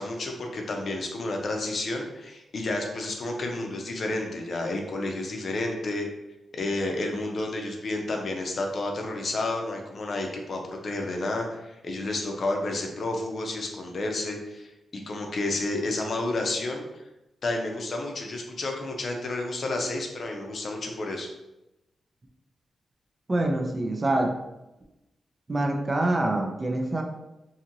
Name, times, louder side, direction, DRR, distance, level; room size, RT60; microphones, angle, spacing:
voice 1, 0.0-6.1 6.5-16.8 17.4-21.3, left 2 dB, 50° left, 2 dB, 0.5 m, -31 dB
voice 2, 23.3-24.4 25.5-27.0, right 2 dB, 30° right, 2 dB, 0.4 m, -25 dB
2.8 x 2.7 x 2.5 m, 0.95 s
cardioid pair, 110°, 0 cm